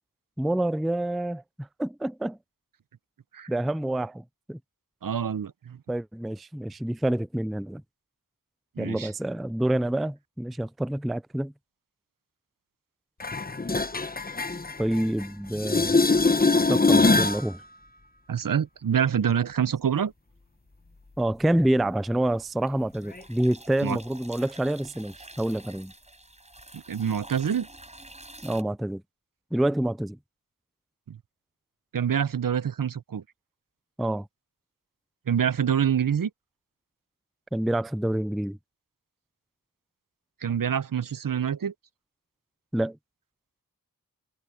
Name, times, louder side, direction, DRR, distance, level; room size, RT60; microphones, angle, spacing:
voice 1, 0.4-2.4 3.5-4.6 5.9-7.8 8.8-11.5 14.8-15.9 16.7-17.6 21.2-25.9 28.4-29.0 29.5-30.2 34.0-34.3 37.5-38.6 42.7-43.0, right 1 dB, ahead, 0.3 m, -27 dB
voice 2, 5.0-5.8 8.8-9.1 18.3-20.1 23.8-24.0 26.7-27.7 31.1-31.2 31.9-33.2 35.3-36.3 40.4-41.7, right 8 dB, 65° right, 0.8 m, -26 dB
sound 1, 13.2-15.3 15.5-17.5 23.2-23.3, left 3 dB, 25° left, 1.0 m, -23 dB
sound 2, 20.5-21.1 21.4-28.6, right 1 dB, 20° right, 6.2 m, -48 dB
wide cardioid pair, 70°, 36 cm